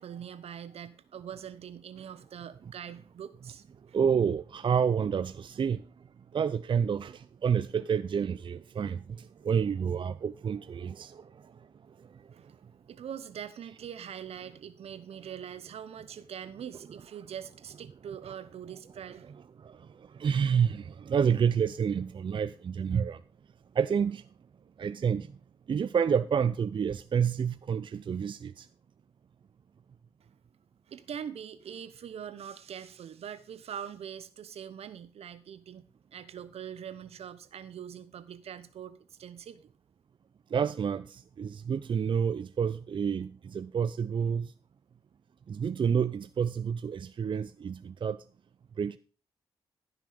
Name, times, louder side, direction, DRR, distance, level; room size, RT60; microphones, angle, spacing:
voice 1, 0.0-4.0 12.3-12.6 12.9-19.3 30.2-30.4 30.9-35.8 36.1-39.6, right 8 dB, 75° right, 1.0 m, -43 dB
voice 2, 3.9-6.0 6.3-12.5 19.6-23.2 23.7-24.3 24.8-25.4 25.7-28.7 40.5-44.5 45.5-48.2 48.8-49.0, right 7 dB, 50° right, 0.5 m, -29 dB
14.5 x 6.2 x 5.1 m
supercardioid pair, 50°, 11 cm